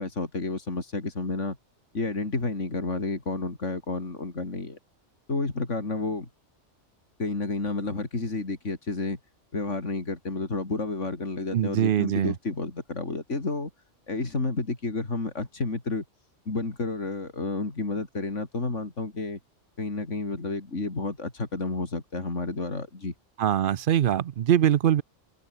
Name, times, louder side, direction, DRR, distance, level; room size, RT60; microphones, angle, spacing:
voice 1, 0.0-1.6 1.9-4.8 5.3-6.3 7.2-9.2 9.5-13.7 14.1-16.0 16.5-19.4 19.8-23.1, left 3 dB, 80° left, 4.0 m, -30 dB
voice 2, 11.5-12.3 23.4-25.0, right 10 dB, 55° right, 0.6 m, -23 dB
omnidirectional pair, 1.2 m